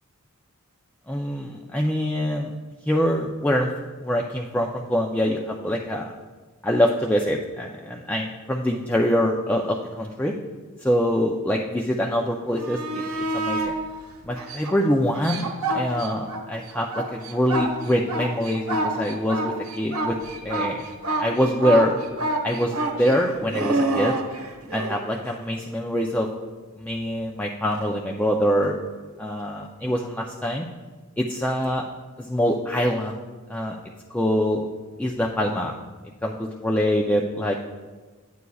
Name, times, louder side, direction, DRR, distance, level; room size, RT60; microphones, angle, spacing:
voice 1, 1.1-2.5 2.9-3.7 4.0-6.1 6.6-10.3 10.8-13.0 13.3-13.8 14.2-15.5 15.7-20.2 20.4-20.8 21.2-22.0 22.4-24.2 24.7-26.3 26.8-28.7 29.2-30.7 31.2-31.8 32.2-33.2 33.5-33.8 34.1-34.7 35.0-35.7 36.2-37.6, equal, 5° left, 0 dB, 0.4 m, -24 dB
sound 1, 12.5-13.7 14.4-16.4 16.7-25.0 27.7-27.8, right 2 dB, 80° right, 1.1 m, -27 dB
9.6 x 9.2 x 2.3 m, 1.3 s
head